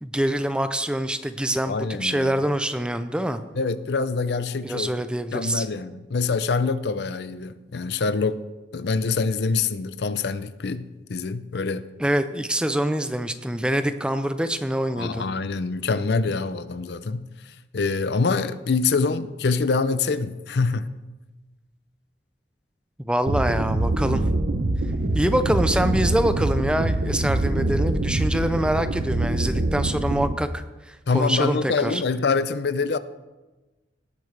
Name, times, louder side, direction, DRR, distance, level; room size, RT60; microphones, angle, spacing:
voice 1, 0.0-3.4 4.6-5.6 12.0-15.3 23.0-24.2 25.1-32.0, right 1 dB, 5° right, 10 dB, 0.4 m, -25 dB
voice 2, 1.7-2.4 3.6-4.9 5.3-8.4 8.7-11.9 15.0-17.2 17.7-20.9 31.1-33.0, left 4 dB, 70° left, 14 dB, 0.5 m, -25 dB
sound 1, 23.3-30.3, right 2 dB, 60° right, 0.8 m, -24 dB
17.5 x 8.4 x 3.3 m, 1.1 s
head